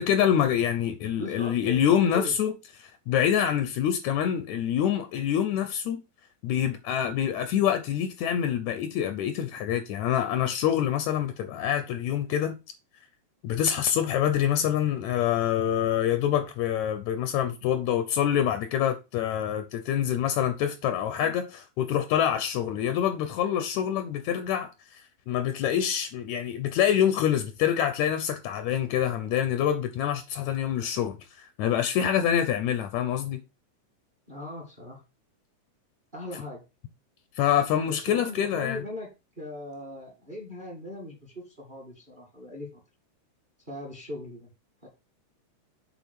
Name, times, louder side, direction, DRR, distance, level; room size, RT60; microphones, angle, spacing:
voice 1, 0.0-2.5 2.8-6.0 6.4-12.6 13.4-33.4 37.4-38.8, left 9 dB, 75° left, 2.0 m, -26 dB
voice 2, 1.2-2.3 34.3-35.0 36.1-36.6 37.9-39.1 39.4-42.8 43.6-44.5 44.8-44.9, left 1 dB, 20° right, 1.7 m, -39 dB
7.2 x 4.5 x 5.9 m
omnidirectional pair, 3.6 m